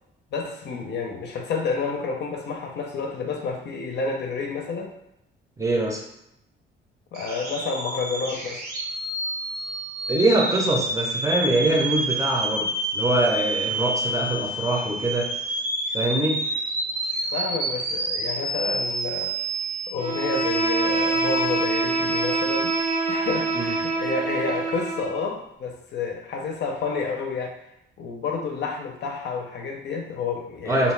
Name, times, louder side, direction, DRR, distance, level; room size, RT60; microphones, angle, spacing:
voice 1, 0.3-4.9 7.1-8.6 17.3-19.4 19.9-22.7 23.1-27.7 28.0-30.9, left 4 dB, 60° left, 2 dB, 0.5 m, -30 dB
voice 2, 5.6-6.0 10.1-15.3 15.9-16.5 23.5-23.7 30.7-30.9, right 2 dB, 15° right, -1 dB, 0.6 m, -23 dB
sound 1, 7.1-23.9, right 1 dB, 50° right, 0.8 m, -29 dB
Bowed string instrument, 20.0-25.2, right 3 dB, 90° right, 1.0 m, -25 dB
2.5 x 2.2 x 3.2 m, 0.81 s
cardioid pair, 90°, 20 cm